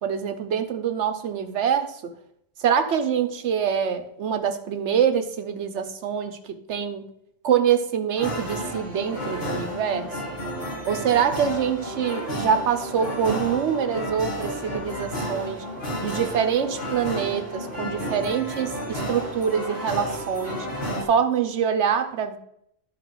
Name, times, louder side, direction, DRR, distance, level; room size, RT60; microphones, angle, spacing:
voice 1, 0.0-2.1 2.6-7.0 7.4-10.1 10.9-15.6 16.0-20.7 21.1-22.4, right 8 dB, 85° right, 8 dB, 1.1 m, -25 dB
sound 1, 8.2-21.0, equal, 60° left, 3.3 m, -32 dB
12.5 x 4.8 x 3.9 m, 0.73 s
omnidirectional pair, 1.2 m